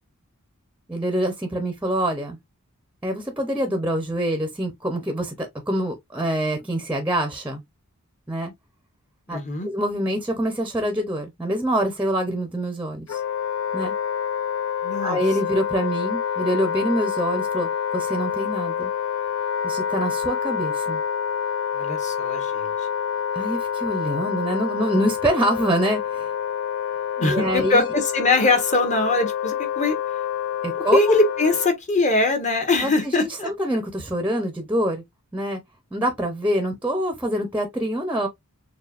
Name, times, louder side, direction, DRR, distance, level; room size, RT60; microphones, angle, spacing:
voice 1, 0.9-2.4 3.0-7.6 8.3-8.5 9.3-13.2 13.7-13.9 15.0-18.9 19.6-21.0 23.3-26.3 27.2-27.8 30.6-31.2 32.8-32.9 33.2-35.0 35.3-35.6 35.9-38.3, right 1 dB, 5° right, 0.7 m, -25 dB
voice 2, 9.3-9.7 14.8-15.2 21.7-22.7 27.2-30.0 30.9-33.5, left 2 dB, 35° left, 1.2 m, -22 dB
Wind instrument woodwind instrument, 13.1-31.7, left 8 dB, 65° left, 0.4 m, -27 dB
6.5 x 2.4 x 2.4 m
head